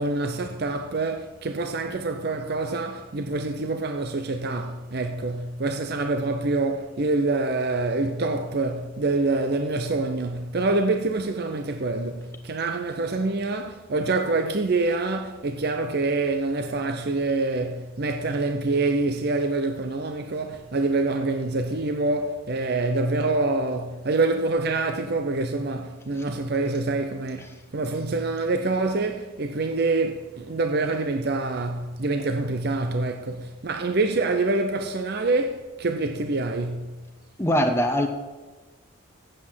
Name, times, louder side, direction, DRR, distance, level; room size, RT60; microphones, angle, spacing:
voice 1, 0.0-36.9, right 3 dB, 50° right, 0.6 m, -26 dB
voice 2, 37.4-38.1, equal, 10° left, 1.0 m, -22 dB
8.4 x 7.7 x 7.4 m
head